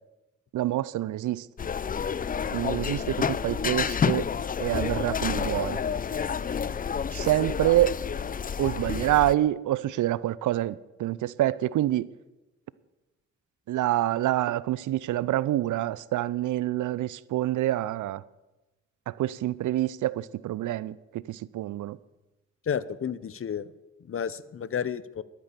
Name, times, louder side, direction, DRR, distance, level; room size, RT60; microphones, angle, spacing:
voice 1, 0.5-1.5 2.5-4.3 4.6-5.8 7.1-8.0 8.6-12.1 13.7-18.2 19.1-22.0, right 14 dB, 65° right, 0.6 m, -27 dB
sound 1, 1.6-9.3, left 6 dB, 25° left, 0.5 m, -29 dB
voice 2, 22.6-23.7 24.0-25.2, left 7 dB, 40° left, 0.8 m, -31 dB
12.0 x 9.8 x 6.9 m
hypercardioid pair, 50°, 33 cm